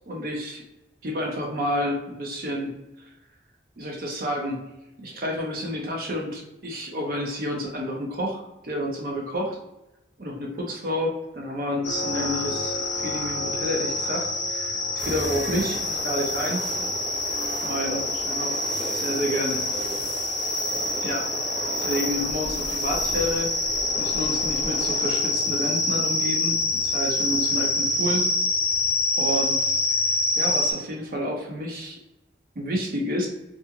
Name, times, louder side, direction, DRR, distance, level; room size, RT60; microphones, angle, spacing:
voice 1, 0.1-0.6 1.0-3.1 3.8-4.6 5.0-9.6 10.2-16.7 17.6-18.0 18.3-18.5 19.0-19.6 21.0-23.5 24.0-28.3 29.2-29.7 30.0-32.0 32.6-33.3, equal, 55° right, 0 dB, 0.5 m, -30 dB
sound 1, 11.8-30.7, left 2 dB, 75° left, 0.6 m, -26 dB
sound 2, 15.0-28.0 28.4-28.5 30.9-31.4, right 2 dB, 85° right, 0.8 m, -37 dB
voice 2, 17.9-18.3 18.6-20.2 27.4-27.9, left 1 dB, 15° left, -4 dB, 0.3 m, -40 dB
2.5 x 2.3 x 2.7 m, 0.94 s
head